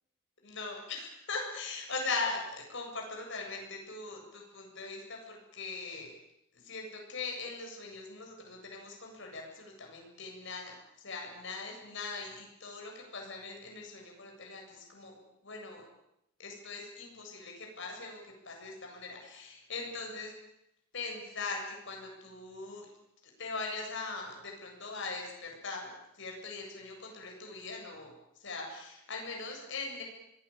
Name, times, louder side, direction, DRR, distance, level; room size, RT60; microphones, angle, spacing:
voice 1, 0.4-6.1 6.6-10.7 11.0-15.2 15.4-15.8 16.4-18.2 18.4-20.3 20.9-22.9 23.4-25.9 26.2-28.1 28.4-30.0, left 3 dB, 60° left, 1 dB, 7.7 m, -40 dB
26.5 x 20.5 x 8.7 m, 0.83 s
head